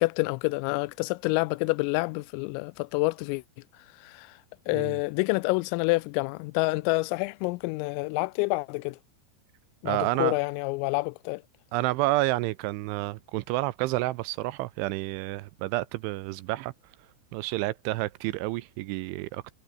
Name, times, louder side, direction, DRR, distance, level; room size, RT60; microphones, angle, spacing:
voice 1, 0.0-3.4 4.0-4.3 4.7-9.0 9.8-11.4, left 25 dB, 90° left, 3.3 m, -28 dB
voice 2, 9.9-10.4 11.7-16.7 17.3-19.4, right 19 dB, 80° right, 2.9 m, -29 dB
omnidirectional pair, 5.8 m